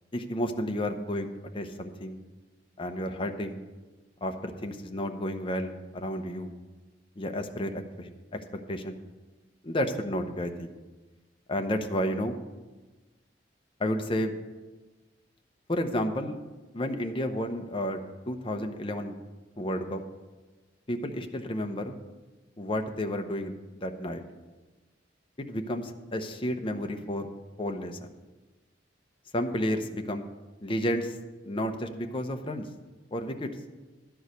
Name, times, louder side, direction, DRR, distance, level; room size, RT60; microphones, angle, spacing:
voice 1, 0.1-2.2 2.8-3.6 4.2-6.5 7.2-9.0 9.6-10.7 11.5-12.4 13.8-14.3 15.7-16.4 16.7-18.0 18.3-19.2 19.6-20.0 20.9-22.0 22.6-23.5 23.8-24.2 25.4-27.3 27.6-28.1 29.3-30.3 30.6-31.2 31.4-32.7 33.1-33.5, equal, 30° left, 5 dB, 0.7 m, -31 dB
11.5 x 4.7 x 8.1 m, 1.2 s
head